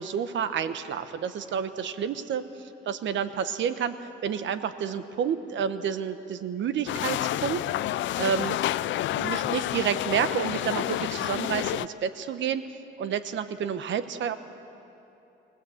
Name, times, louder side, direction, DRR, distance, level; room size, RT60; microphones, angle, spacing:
voice 1, 0.0-2.4 2.9-3.9 4.2-7.6 8.2-8.6 9.1-12.6 13.0-14.4, right 8 dB, 70° right, 11 dB, 1.1 m, -29 dB
sound 1, 6.9-11.9, left 14 dB, 70° left, 0.4 m, -29 dB
23.0 x 18.0 x 8.0 m, 2.8 s
cardioid pair, 90°, 20 cm